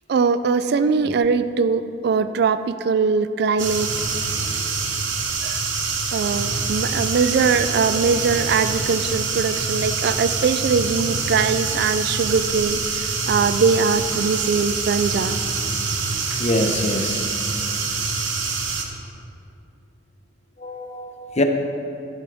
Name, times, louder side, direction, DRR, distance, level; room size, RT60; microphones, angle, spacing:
voice 1, 0.1-3.9 5.4-5.6 6.1-15.4, right 5 dB, 60° right, 12 dB, 0.3 m, -21 dB
sound 1, 3.6-18.9, right 4 dB, 90° right, 1.1 m, -25 dB
voice 2, 16.4-17.2 20.6-21.4, left 1 dB, 35° left, 5 dB, 0.8 m, -24 dB
12.0 x 10.5 x 3.5 m, 2.6 s
head